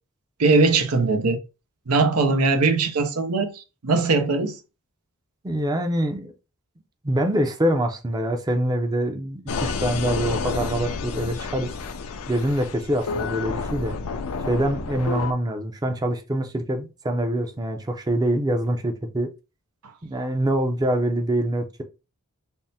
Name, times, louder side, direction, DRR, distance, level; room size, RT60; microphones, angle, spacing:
voice 1, 0.4-1.4 1.9-4.5, right 3 dB, 90° right, 0.7 m, -20 dB
voice 2, 5.4-6.3 7.0-11.7 12.3-14.0 14.5-19.3 20.0-21.8, right 1 dB, 20° right, 0.5 m, -25 dB
sound 1, 9.5-15.3, left 4 dB, 75° left, 0.5 m, -30 dB
3.5 x 2.1 x 4.1 m
head